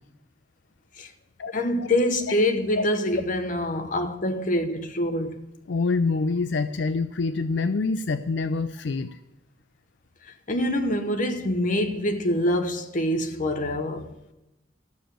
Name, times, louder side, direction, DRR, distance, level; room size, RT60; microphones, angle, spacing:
voice 1, 1.5-5.5 10.3-14.1, left 1 dB, 45° left, 1.0 m, -25 dB
voice 2, 5.7-9.2, left 3 dB, 80° left, 0.5 m, -26 dB
13.5 x 6.9 x 7.6 m
head